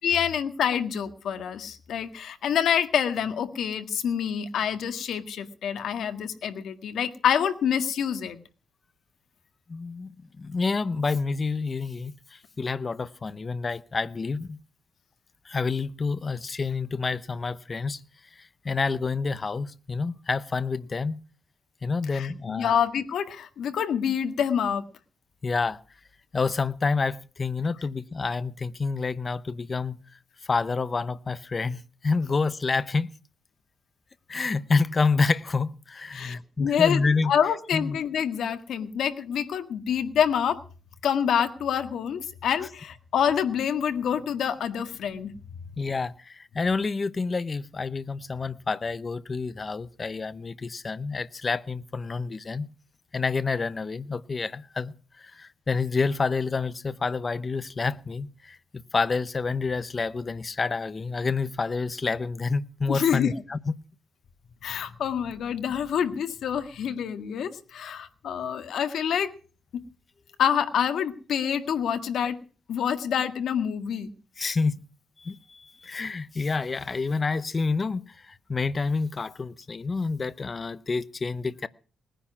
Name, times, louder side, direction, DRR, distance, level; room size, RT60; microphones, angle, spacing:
voice 1, 0.0-8.4 22.1-24.9 36.1-40.6 41.0-45.3 62.9-63.3 64.6-69.3 69.7-69.8 70.4-72.4 72.7-74.1, left 8 dB, 70° left, 1.7 m, -27 dB
voice 2, 9.7-14.6 15.4-18.0 18.4-21.2 21.8-22.8 25.4-25.8 26.3-30.0 30.4-33.1 34.3-37.3 37.7-38.0 45.8-52.7 53.1-58.6 58.9-63.6 74.4-74.8 75.2-81.7, left 4 dB, 25° left, 0.7 m, -28 dB
19.5 x 10.0 x 6.0 m
cardioid pair, 145°, 0 cm